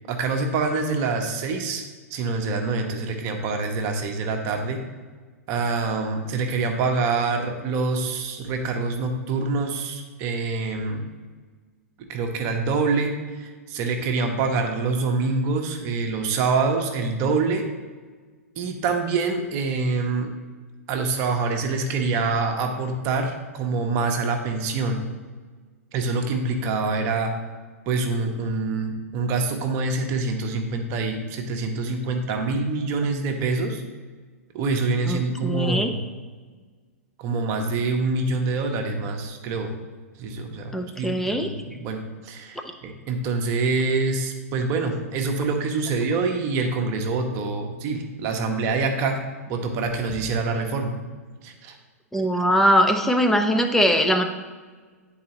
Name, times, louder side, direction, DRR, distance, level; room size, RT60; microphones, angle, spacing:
voice 1, 0.1-1.8 2.1-4.8 5.5-11.0 12.0-17.6 18.6-20.3 20.9-25.0 25.9-27.3 27.9-33.8 34.5-35.9 37.2-39.7 40.2-49.2 49.5-50.9 51.4-51.7, right 3 dB, 35° right, 4 dB, 0.8 m, -25 dB
voice 2, 35.1-35.9 40.7-41.5 52.1-54.2, equal, 5° left, 4 dB, 0.5 m, -21 dB
9.4 x 4.0 x 2.9 m, 1.4 s
figure-of-eight pair, 105°, 8 cm